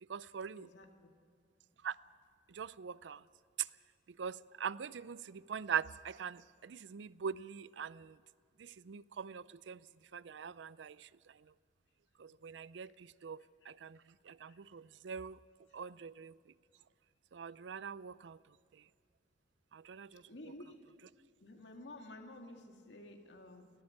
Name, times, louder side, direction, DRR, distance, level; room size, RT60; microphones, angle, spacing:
voice 1, 0.0-0.7 1.8-2.0 2.5-3.3 3.6-3.8 4.1-8.2 8.6-11.5 12.2-15.4 15.7-16.5 17.3-18.9 19.7-20.5, right 7 dB, 85° right, 0.4 m, -43 dB
voice 2, 0.6-1.1 14.4-14.6 20.1-20.9 21.4-23.7, left 1 dB, 80° left, 2.0 m, -52 dB
18.5 x 14.0 x 9.9 m
head